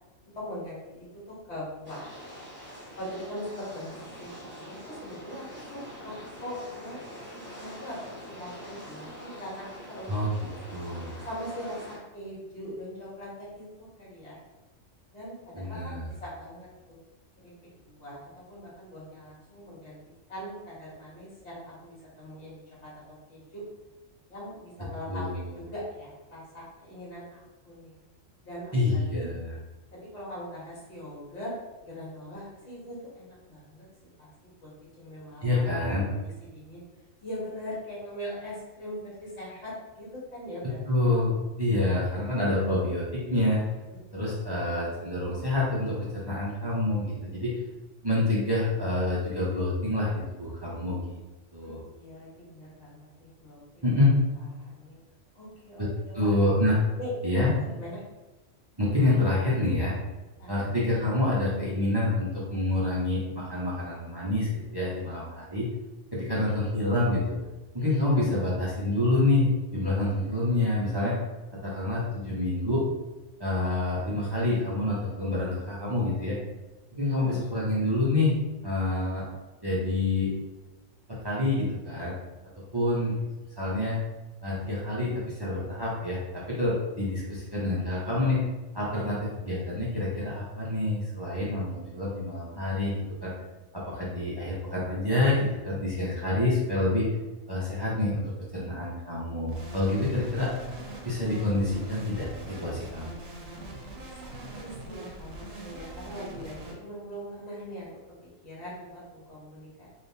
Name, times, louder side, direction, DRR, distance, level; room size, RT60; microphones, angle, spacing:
voice 1, 0.3-2.1 2.5-2.6 3.0-4.3 4.6-7.0 7.3-10.1 11.2-14.4 15.1-16.7 17.4-20.0 20.3-22.9 23.3-23.7 24.3-25.2 25.5-27.9 28.4-29.3 29.9-31.5 31.8-33.8 34.2-34.3 34.6-34.7 35.0-36.8 37.2-41.2 41.9-42.0 44.1-44.3 51.6-53.9 54.4-55.0 55.3-56.3 57.0-57.1 57.4-58.0 60.4-60.6 77.2-77.4 88.9-89.0 103.9-107.9 108.2-109.9, equal, 60° left, -7 dB, 1.6 m, -41 dB
sound 1, 1.8-12.0, equal, 10° right, 1.0 m, -45 dB
voice 2, 10.7-11.1 15.5-16.1 25.1-25.4 28.7-29.5 35.4-36.1 40.9-43.6 44.1-47.5 48.0-51.2 51.5-51.8 53.8-54.1 55.8-55.9 56.1-56.8 57.2-57.5 58.8-59.9 60.5-65.7 66.1-67.4 67.7-71.1 71.6-72.8 73.4-76.4 76.9-78.3 78.6-79.2 79.6-80.3 81.2-82.2 82.7-83.1 83.6-84.0 84.4-88.4 88.7-92.9 93.2-93.3 93.7-97.1 97.5-98.2 98.5-100.5 101.0-103.2, left 2 dB, 25° right, -7 dB, 0.6 m, -27 dB
sound 2, 99.5-106.7, right 2 dB, 90° right, 1.1 m, -42 dB
3.4 x 2.8 x 2.7 m, 1.1 s
omnidirectional pair, 1.4 m